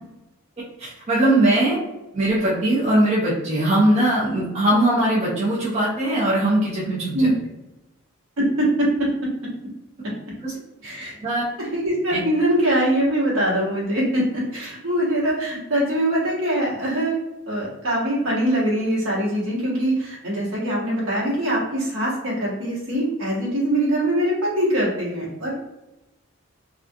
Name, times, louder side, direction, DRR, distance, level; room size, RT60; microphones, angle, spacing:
voice 1, 0.6-1.8 2.1-7.3 10.4-10.5 11.2-11.4 12.1-12.2, right 1 dB, 30° right, -6 dB, 0.5 m, -20 dB
voice 2, 8.4-9.1 10.8-11.1 11.6-17.2 17.5-25.5, right 1 dB, 70° right, -6 dB, 1.0 m, -23 dB
2.4 x 2.2 x 2.6 m, 0.97 s
head